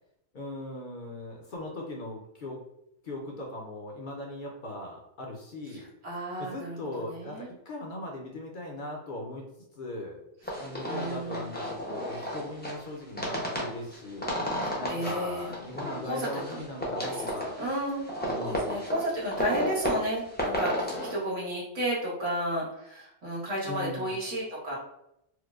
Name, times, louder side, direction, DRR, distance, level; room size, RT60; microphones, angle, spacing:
voice 1, 0.3-2.6 3.0-5.9 6.4-9.4 9.8-10.2 10.6-14.3 14.8-17.5 18.2-18.7 23.7-24.1, left 1 dB, 55° left, -1 dB, 0.6 m, -39 dB
voice 2, 5.8-7.5 10.8-11.5 14.5-15.5 16.0-16.6 17.0-17.3 17.6-18.0 18.3-24.7, equal, 85° right, -6 dB, 1.6 m, -33 dB
sound 1, 10.4-21.2, equal, 10° left, 0.5 m, -33 dB
4.5 x 2.0 x 2.3 m, 0.81 s
omnidirectional pair, 1.2 m